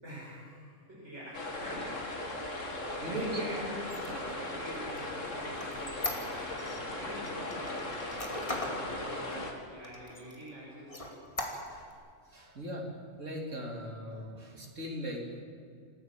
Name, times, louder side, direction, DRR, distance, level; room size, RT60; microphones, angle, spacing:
voice 1, 0.0-11.0, equal, 65° right, -7 dB, 6.2 m, -45 dB
sound 1, 1.3-9.5, left 2 dB, 85° left, 2.8 m, -38 dB
voice 2, 3.0-3.4 11.7-11.8 12.3-12.9 13.2-15.4, right 1 dB, 85° right, 0 dB, 3.5 m, -39 dB
Squeak, 3.8-6.8 7.3-8.8 9.3-9.4 9.8-10.5 10.9-11.9, left 2 dB, 25° left, 2.7 m, -39 dB
27.5 x 15.5 x 7.5 m, 2.2 s
omnidirectional pair, 1.3 m